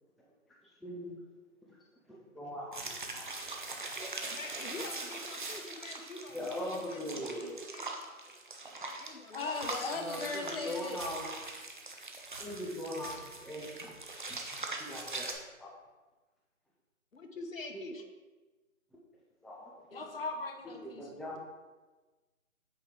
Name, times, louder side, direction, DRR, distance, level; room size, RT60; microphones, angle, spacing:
voice 1, 0.8-1.2 2.1-3.5 6.3-7.6 10.0-11.3 12.4-13.9 14.3-15.3 15.6-15.7 17.7-17.8 19.4-20.0 20.8-21.4, equal, ahead, -4 dB, 0.4 m, -41 dB
sound 1, 2.7-15.3, right 3 dB, 35° right, 0.6 m, -42 dB
voice 2, 4.3-7.9 9.0-9.6 17.1-18.1, left 3 dB, 70° left, 5 dB, 1.1 m, -46 dB
voice 3, 9.3-11.0 19.9-21.1, left 3 dB, 45° left, 4 dB, 0.6 m, -38 dB
8.2 x 4.7 x 3.7 m, 1.2 s
figure-of-eight pair, 160°, 41 cm